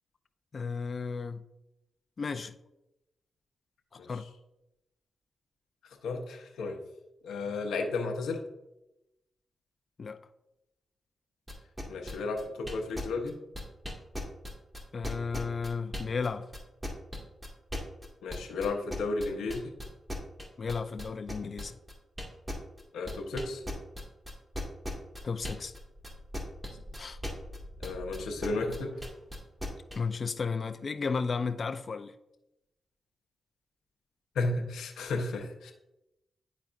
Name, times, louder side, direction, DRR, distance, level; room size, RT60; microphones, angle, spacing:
voice 1, 0.5-1.4 2.2-2.5 3.9-4.2 10.0-10.2 14.9-16.5 20.6-21.8 25.2-25.7 27.0-27.2 29.9-32.1, left 5 dB, 50° left, 10 dB, 0.4 m, -33 dB
voice 2, 6.0-6.8 7.2-8.4 11.9-13.3 18.2-19.7 22.9-23.6 27.8-29.0 34.3-35.7, left 3 dB, 90° left, 2 dB, 0.8 m, -33 dB
sound 1, 11.5-16.3 16.5-25.8 26.0-30.0, left 1 dB, 20° right, 1.9 m, -37 dB
sound 2, 25.8-29.4, equal, 40° right, 1.2 m, -49 dB
10.5 x 4.1 x 2.5 m, 0.93 s
cardioid pair, 60°, 0 cm